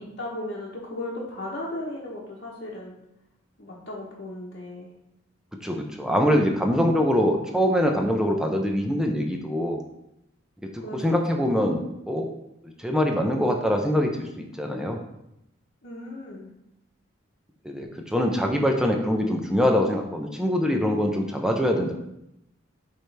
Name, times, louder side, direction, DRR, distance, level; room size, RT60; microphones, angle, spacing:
voice 1, 0.0-2.9 3.6-4.9 10.8-11.4 15.8-16.5, left 1 dB, 55° left, -7 dB, 1.0 m, -36 dB
voice 2, 5.6-9.8 10.7-12.3 12.8-15.0 17.6-21.9, equal, 5° right, 2 dB, 0.5 m, -24 dB
8.6 x 3.2 x 3.3 m, 0.84 s
head